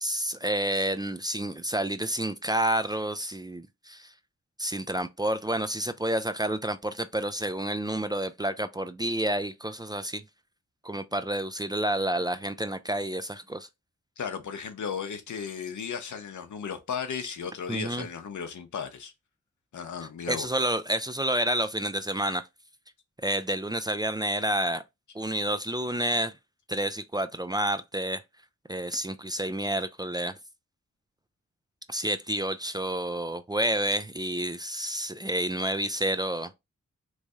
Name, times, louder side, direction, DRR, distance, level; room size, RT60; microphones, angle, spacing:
voice 1, 0.0-4.1 4.6-10.2 10.8-13.7 17.7-18.1 20.3-22.4 23.2-24.8 25.1-26.4 26.7-28.2 28.7-30.3 31.9-36.5, right 1 dB, 15° right, 0.4 m, -29 dB
voice 2, 14.2-19.1 19.7-20.5, left 6 dB, 80° left, 0.7 m, -35 dB
3.1 x 2.6 x 3.4 m
cardioid pair, 45°, 29 cm